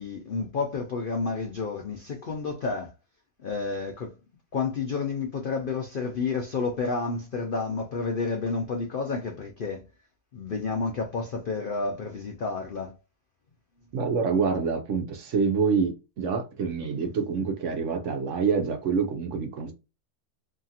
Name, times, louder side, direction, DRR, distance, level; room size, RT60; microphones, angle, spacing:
voice 1, 0.0-2.9 3.4-4.1 4.5-9.8 10.3-12.9, left 4 dB, 65° left, 0.5 m, -30 dB
voice 2, 13.9-19.7, right 5 dB, 60° right, 0.9 m, -26 dB
2.8 x 2.4 x 2.7 m
omnidirectional pair, 1.6 m